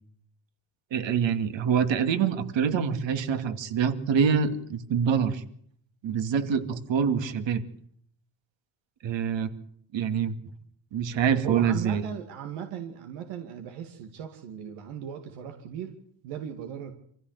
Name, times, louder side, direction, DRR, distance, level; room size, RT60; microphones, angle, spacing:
voice 1, 0.9-5.4 6.0-7.6 9.0-9.5 9.9-10.3 10.9-12.0, right 7 dB, 65° right, 10 dB, 2.5 m, -25 dB
voice 2, 11.4-16.9, right 8 dB, 85° right, 5 dB, 2.5 m, -38 dB
25.0 x 15.5 x 8.2 m, 0.64 s
cardioid pair, 115°, 49 cm